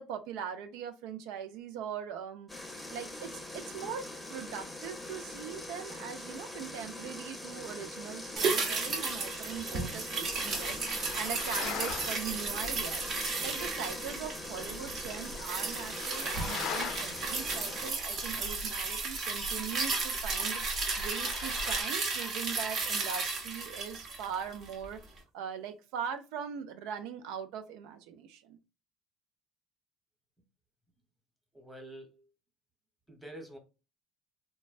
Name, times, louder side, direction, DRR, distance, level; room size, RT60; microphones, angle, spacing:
voice 1, 0.0-2.5 2.9-25.0 25.3-28.6, right 8 dB, 85° right, 9 dB, 0.3 m, -41 dB
sound 1, 2.5-17.9, left 1 dB, 5° left, 0.7 m, -43 dB
sound 2, 8.4-24.9 25.2-25.3, right 4 dB, 55° right, 0.7 m, -34 dB
sound 3, 10.2-21.8, left 5 dB, 65° left, 0.5 m, -43 dB
voice 2, 31.5-32.3 33.1-33.6, right 1 dB, 10° right, 3 dB, 1.0 m, -47 dB
3.1 x 2.1 x 2.4 m, 0.30 s
cardioid pair, 105°, 0 cm